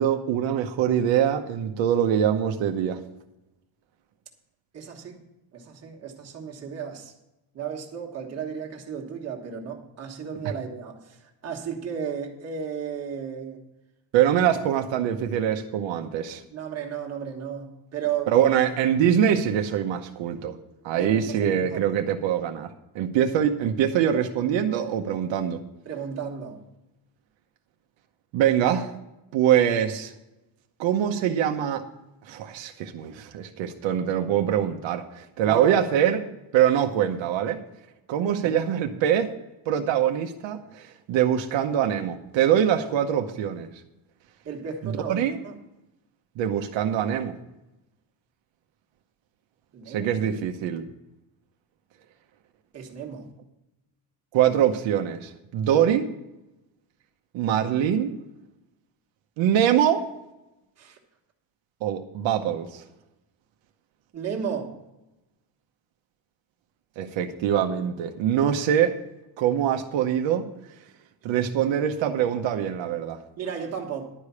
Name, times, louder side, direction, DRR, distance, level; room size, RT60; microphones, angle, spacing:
voice 1, 0.0-3.0 14.1-16.4 18.3-20.5 20.8-22.7 22.9-25.6 28.3-28.9 29.3-30.1 30.8-31.8 32.3-36.2 36.5-37.6 38.1-39.3 39.7-43.7 44.8-45.4 46.4-47.3 49.9-50.9 54.3-56.1 57.3-58.1 59.4-60.1 61.8-62.8 67.0-69.0 69.4-70.5 71.2-73.2, right 9 dB, 80° right, 5 dB, 0.9 m, -23 dB
voice 2, 4.7-5.2 5.5-7.1 7.5-13.7 16.5-18.3 20.9-22.0 25.8-26.6 35.4-35.8 38.4-38.6 44.4-45.6 49.7-50.1 52.7-53.3 55.7-55.9 60.8-61.0 64.1-64.8 73.4-74.1, right 7 dB, 35° right, 1 dB, 1.4 m, -34 dB
11.0 x 4.9 x 8.3 m, 0.94 s
cardioid pair, 175°, 45 cm